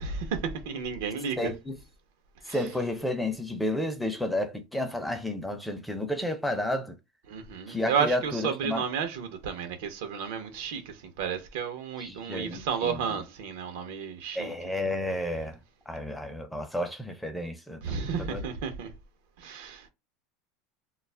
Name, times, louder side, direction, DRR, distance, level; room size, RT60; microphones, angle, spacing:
voice 1, 0.0-1.5 2.4-2.6 7.3-14.5 17.8-18.9 19.4-19.9, right 6 dB, 75° right, 0.7 m, -32 dB
voice 2, 1.4-1.8 2.5-7.0 7.7-8.8 12.0-13.0 14.3-15.6 15.9-18.4, left 1 dB, 5° left, 0.6 m, -31 dB
2.3 x 2.0 x 3.2 m
supercardioid pair, 120°, 0 cm